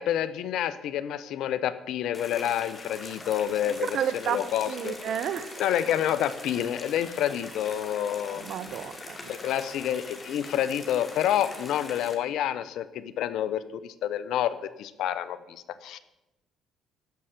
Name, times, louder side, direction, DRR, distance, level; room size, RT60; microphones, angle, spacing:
voice 1, 0.0-4.9 5.6-8.4 9.3-16.0, left 10 dB, 70° left, 15 dB, 0.7 m, -28 dB
sound 1, 2.1-12.1, left 2 dB, 30° left, 2.5 m, -42 dB
voice 2, 3.9-5.5 8.2-9.3 9.6-9.7, right 9 dB, 65° right, 14 dB, 0.9 m, -32 dB
14.5 x 5.6 x 7.7 m, 0.96 s
supercardioid pair, 75°, 0 cm